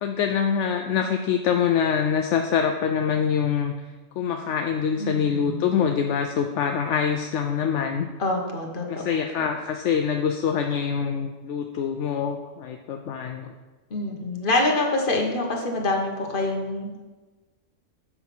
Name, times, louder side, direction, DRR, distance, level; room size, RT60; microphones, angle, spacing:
voice 1, 0.0-3.7 4.2-8.1 8.9-13.5, left 7 dB, 70° left, 4 dB, 0.9 m, -25 dB
voice 2, 5.0-5.7 8.2-9.5 13.9-17.0, left 2 dB, 45° left, 1 dB, 1.4 m, -26 dB
7.9 x 5.5 x 6.0 m, 1.2 s
omnidirectional pair, 1.3 m